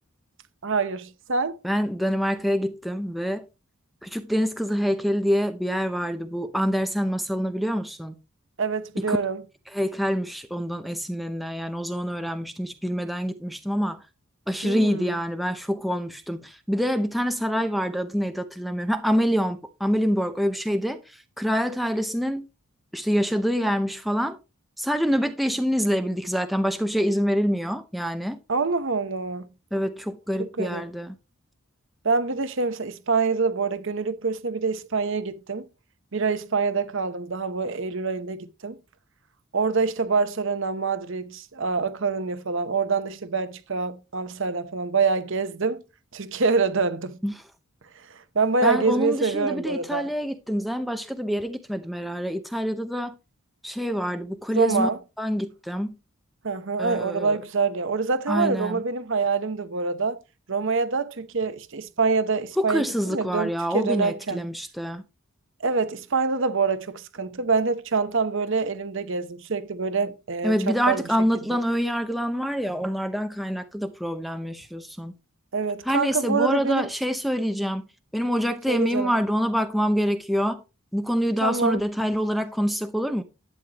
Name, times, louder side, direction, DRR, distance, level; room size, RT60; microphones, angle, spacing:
voice 1, 0.6-1.6 8.6-9.4 14.6-15.1 28.5-29.5 30.4-30.8 32.0-35.7 36.1-38.8 39.5-45.8 46.1-47.2 48.3-50.1 54.5-55.0 56.4-60.2 60.5-64.4 65.6-71.0 75.5-76.9 78.7-79.1 81.4-81.8, right 4 dB, 60° right, 0.9 m, -25 dB
voice 2, 1.6-3.5 4.0-8.1 9.0-9.2 9.7-14.0 14.5-22.5 22.9-24.4 24.8-28.4 29.7-31.2 47.2-47.3 48.6-53.2 53.6-54.9 55.2-56.0 56.8-57.4 58.3-58.8 62.6-65.0 70.4-75.2 75.8-77.9 78.1-80.6 80.9-83.2, equal, ahead, 0.7 m, -26 dB
11.5 x 9.3 x 2.9 m
head